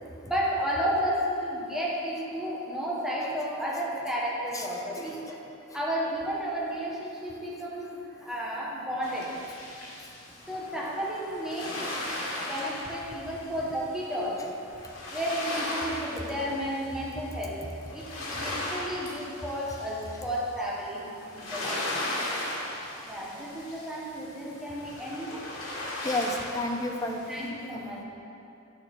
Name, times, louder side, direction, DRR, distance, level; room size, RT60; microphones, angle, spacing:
voice 1, 0.3-5.4 5.7-9.3 10.5-11.8 12.5-14.6 15.1-17.6 17.9-22.0 23.0-25.4 27.3-28.0, equal, ahead, -6 dB, 1.3 m, -32 dB
voice 2, 4.9-5.4 26.0-28.0, left 2 dB, 15° left, 2 dB, 0.6 m, -32 dB
sound 1, 9.0-27.5, left 1 dB, 70° left, 2.0 m, -37 dB
10.5 x 6.5 x 4.4 m, 2.6 s
head